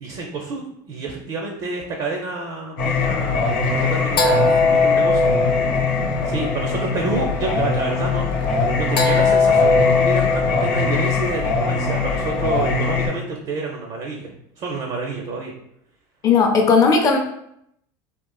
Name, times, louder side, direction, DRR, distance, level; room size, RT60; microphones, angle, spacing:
voice 1, 0.0-5.3 5.8-15.5, right 3 dB, 45° right, 1 dB, 0.5 m, -29 dB
Singing, 2.8-13.1, left 4 dB, 85° left, 0.8 m, -19 dB
voice 2, 16.2-17.2, left 5 dB, 30° left, 2 dB, 0.6 m, -15 dB
3.7 x 2.4 x 2.3 m, 0.75 s
supercardioid pair, 125°, 11 cm